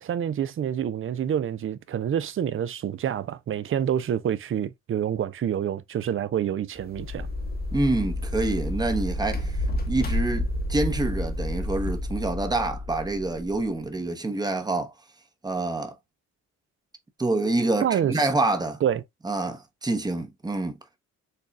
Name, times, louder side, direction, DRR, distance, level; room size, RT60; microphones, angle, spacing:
voice 1, 0.0-7.3 17.8-18.2 18.8-19.0, right 9 dB, 45° right, 0.5 m, -27 dB
sound 1, 6.8-12.0, left 3 dB, 30° left, 1.0 m, -35 dB
sound 2, 6.9-13.6, equal, 55° left, 1.6 m, -31 dB
voice 2, 7.7-14.9 15.4-15.9 17.2-18.8 19.2-20.8, right 2 dB, 15° right, 0.9 m, -27 dB
6.7 x 2.4 x 2.3 m
cardioid pair, 90°, 30 cm